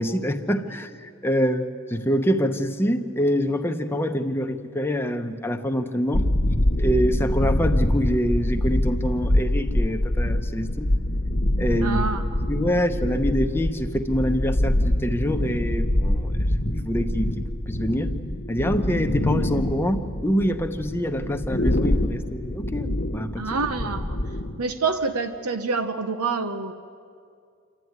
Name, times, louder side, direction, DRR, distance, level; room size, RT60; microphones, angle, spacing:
voice 1, 0.0-1.6 1.9-6.2 6.8-10.9 11.6-12.0 12.4-18.1 18.5-23.5, equal, 10° left, 6 dB, 0.8 m, -25 dB
sound 1, 6.1-24.6, left 1 dB, 45° left, 1.2 m, -25 dB
voice 2, 11.8-12.2 23.4-24.2 24.6-26.7, right 4 dB, 90° right, 8 dB, 0.9 m, -27 dB
27.5 x 13.0 x 9.5 m, 2.3 s
head